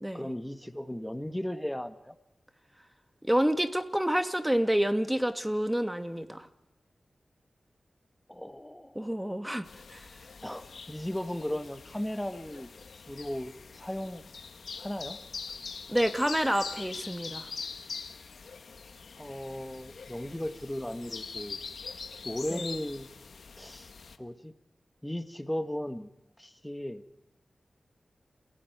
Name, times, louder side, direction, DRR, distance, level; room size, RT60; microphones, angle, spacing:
voice 1, 0.1-2.2 8.3-9.1 10.4-12.7 13.1-14.2 14.8-15.2 19.2-21.6 22.2-23.1 23.6-23.9 24.2-24.5 25.0-26.1 26.4-27.0, left 1 dB, 10° left, 9 dB, 1.6 m, -36 dB
voice 2, 3.2-6.5 9.0-10.0 15.9-17.5 22.5-22.7, equal, 10° right, 8 dB, 2.1 m, -28 dB
sound 1, 9.6-24.2, left 5 dB, 80° left, 1.5 m, -43 dB
28.0 x 16.5 x 9.4 m, 0.95 s
cardioid pair, 40°, 0 cm